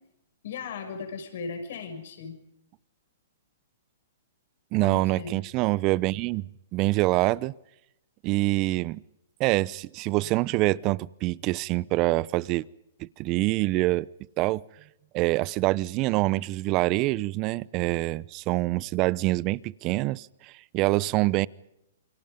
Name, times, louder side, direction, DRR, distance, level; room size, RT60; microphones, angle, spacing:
voice 1, 0.4-2.4 4.8-5.4, left 5 dB, 65° left, 7 dB, 6.7 m, -37 dB
voice 2, 4.7-6.4 6.7-7.5 8.2-9.0 9.4-12.6 13.0-14.1 14.4-14.6 15.1-21.5, right 20 dB, 35° right, 22 dB, 0.8 m, -25 dB
28.5 x 24.5 x 5.3 m, 0.86 s
hypercardioid pair, 130°, 0 cm